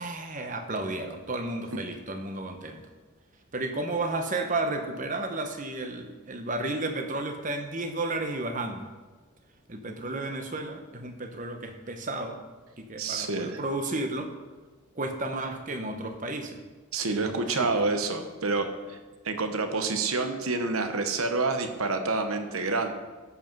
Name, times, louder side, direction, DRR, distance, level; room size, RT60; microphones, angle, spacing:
voice 1, 0.0-2.8 3.5-8.9 9.7-12.4 12.8-14.3 15.0-16.6 17.1-17.7, right 2 dB, 35° right, 5 dB, 0.9 m, -32 dB
voice 2, 13.0-13.6 16.9-19.0 19.2-22.9, right 3 dB, 80° right, 6 dB, 1.1 m, -28 dB
13.0 x 5.4 x 5.4 m, 1.3 s
head